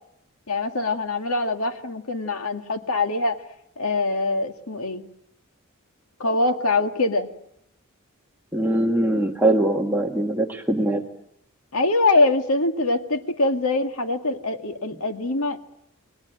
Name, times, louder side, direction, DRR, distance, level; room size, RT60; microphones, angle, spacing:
voice 1, 0.5-3.4 3.8-5.0 6.2-7.3 11.7-15.6, left 2 dB, 75° left, 6 dB, 2.1 m, -23 dB
voice 2, 8.5-11.0, right 1 dB, 10° right, 0 dB, 1.5 m, -22 dB
29.5 x 21.5 x 9.1 m, 0.78 s
head